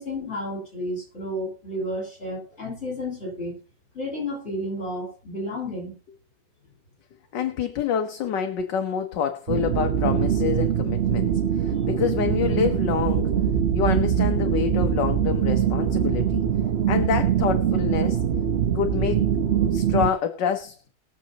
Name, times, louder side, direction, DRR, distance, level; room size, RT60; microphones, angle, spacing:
voice 1, 0.0-3.6 3.9-6.0, left 1 dB, 30° left, 6.3 m, -31 dB
voice 2, 7.3-13.3 13.7-16.4 16.9-18.2 18.7-19.3 19.6-20.8, left 7 dB, 65° left, 1.5 m, -27 dB
sound 1, 9.5-20.1, right 9 dB, 50° right, 0.7 m, -23 dB
21.5 x 7.3 x 2.9 m
omnidirectional pair, 2.2 m